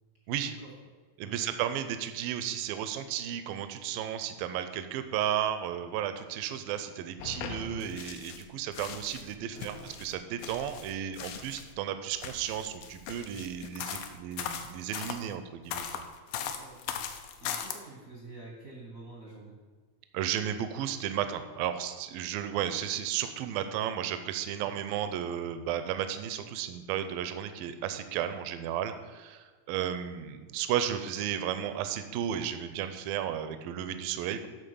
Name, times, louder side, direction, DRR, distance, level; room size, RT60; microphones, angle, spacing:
voice 1, 1.2-16.0 20.1-34.5, right 10 dB, 85° right, 9 dB, 2.3 m, -33 dB
sound 1, 7.2-8.4 8.7-11.7 12.1-15.2 15.7-17.8, left 8 dB, 80° left, 2.4 m, -39 dB
voice 2, 9.5-10.0 16.3-19.6 24.6-24.8, right 2 dB, 60° right, -3 dB, 0.8 m, -48 dB
11.0 x 4.1 x 6.9 m, 1.4 s
omnidirectional pair, 4.2 m